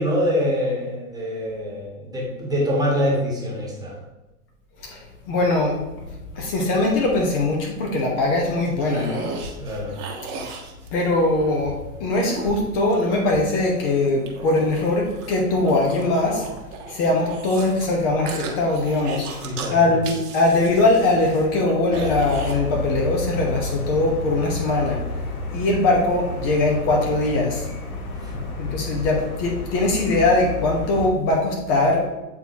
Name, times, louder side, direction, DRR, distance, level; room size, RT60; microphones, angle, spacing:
voice 1, 0.0-4.0 9.6-10.0 19.4-20.0 28.2-28.5, equal, 10° right, -3 dB, 1.4 m, -25 dB
voice 2, 4.8-5.8 6.3-9.3 10.9-16.4 16.9-25.0 25.5-27.7 28.6-32.1, left 2 dB, 40° left, 0 dB, 1.1 m, -21 dB
sound 1, 8.6-11.6 12.2-13.2 13.7-17.9 18.3-19.7 20.0-22.5, right 3 dB, 35° right, 1.1 m, -35 dB
sound 2, 21.9-31.1, left 2 dB, 70° left, 1.1 m, -31 dB
8.1 x 4.1 x 2.9 m, 1.1 s
figure-of-eight pair, 100°, 45 cm